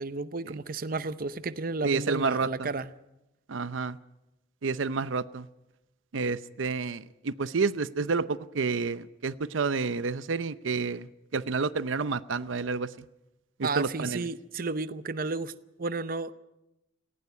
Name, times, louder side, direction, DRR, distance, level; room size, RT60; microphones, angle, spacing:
voice 1, 0.0-2.9 13.6-15.5 15.8-16.3, right 3 dB, 50° right, 0.7 m, -32 dB
voice 2, 1.8-2.7 3.5-4.0 4.6-5.5 6.1-12.9 13.6-14.3, right 4 dB, 85° right, 0.6 m, -29 dB
18.5 x 16.5 x 9.5 m
head